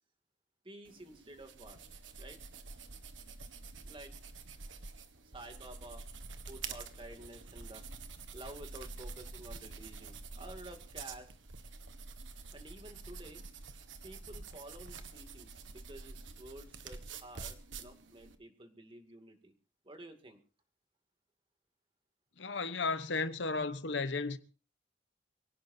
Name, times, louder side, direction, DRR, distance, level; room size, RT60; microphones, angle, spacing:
voice 1, 0.6-1.8 2.2-2.4 3.8-4.1 5.3-6.0 6.5-7.8 8.3-11.3 12.5-13.4 14.0-19.5 19.8-20.4, right 1 dB, 30° right, 2.5 m, -51 dB
sound 1, 0.9-18.3, right 4 dB, 85° right, 1.5 m, -48 dB
voice 2, 22.4-24.4, left 3 dB, 70° left, 1.1 m, -34 dB
25.0 x 17.0 x 2.7 m
head